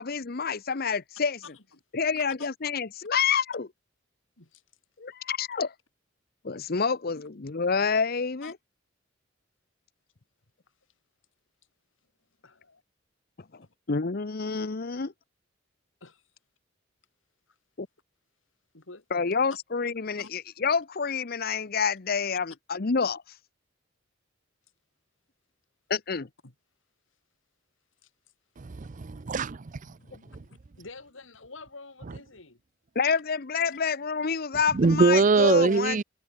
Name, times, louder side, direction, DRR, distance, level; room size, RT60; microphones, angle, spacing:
voice 1, 0.0-1.4 1.9-3.7 5.0-5.7 6.4-8.5 13.5-15.1 17.8-17.9 19.1-23.2 25.9-26.3 32.9-36.0, left 5 dB, 50° left, 0.8 m, -28 dB
voice 2, 1.4-1.8 2.4-2.5 4.4-4.6 7.2-7.3 8.4-8.5 12.4-12.8 13.6-13.7 16.0-16.2 17.5-17.6 18.7-19.3 20.2-20.3 26.4-26.5 28.0-28.1 29.8-32.6 33.7-33.8, left 3 dB, 90° left, 3.0 m, -49 dB
voice 3, 28.6-29.6 34.7-36.0, right 4 dB, 40° right, 0.5 m, -22 dB
head